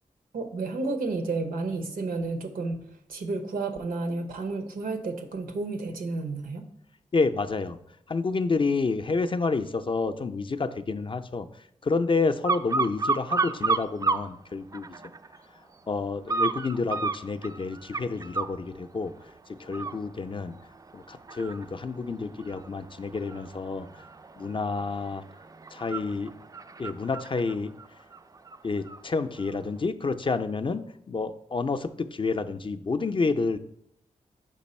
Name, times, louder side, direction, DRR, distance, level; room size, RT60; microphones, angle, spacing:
voice 1, 0.3-2.8 3.1-6.7, right 3 dB, 90° right, 7 dB, 0.8 m, -31 dB
voice 2, 7.1-7.8 8.1-11.5 11.8-14.9 15.9-19.1 19.6-20.5 20.9-23.9 24.4-25.2 25.7-26.3 26.8-27.7 28.6-33.6, left 4 dB, 35° left, 10 dB, 0.4 m, -29 dB
sound 1, 12.4-14.3 14.7-15.4 16.3-18.6 19.1-19.3 19.6-29.0 29.4-29.5, right 4 dB, 25° right, 0.3 m, -32 dB
5.3 x 5.1 x 4.2 m, 0.73 s
cardioid pair, 60°, 14 cm